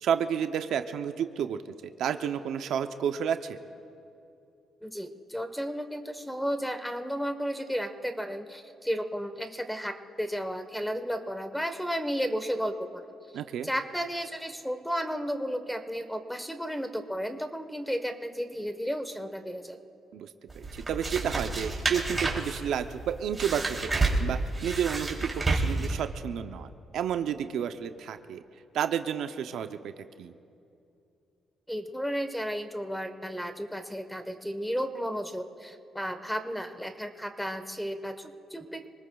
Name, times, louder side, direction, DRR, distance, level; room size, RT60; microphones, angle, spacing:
voice 1, 0.0-3.6 13.3-13.7 20.1-28.4 28.7-29.9 30.2-30.3, right 8 dB, 75° right, 9 dB, 0.6 m, -31 dB
voice 2, 4.8-9.9 10.2-13.1 13.6-19.8 31.7-38.9, equal, ahead, 7 dB, 1.2 m, -33 dB
sound 1, 20.5-26.0, right 3 dB, 20° right, 3.1 m, -30 dB
27.0 x 19.5 x 2.3 m, 2.7 s
cardioid pair, 90°, 0 cm